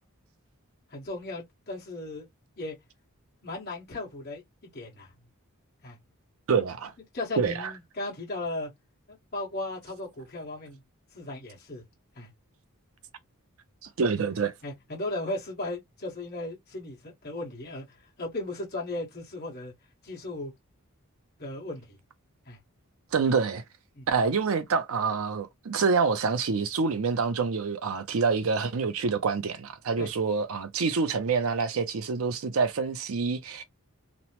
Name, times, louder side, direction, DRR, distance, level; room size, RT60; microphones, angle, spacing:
voice 1, 0.9-2.3 2.6-2.8 3.4-5.1 5.8-6.0 7.1-8.7 9.1-10.8 11.1-11.8 12.1-12.3 14.6-17.9 18.2-19.7 20.0-20.5 21.4-22.0 22.5-22.6 24.0-24.1 30.0-30.1, left 2 dB, 45° left, 1.3 m, -36 dB
voice 2, 6.5-6.9 7.4-7.7 14.0-14.5 23.1-23.6 24.1-33.6, right 5 dB, 70° right, 0.5 m, -26 dB
2.9 x 2.1 x 2.9 m
head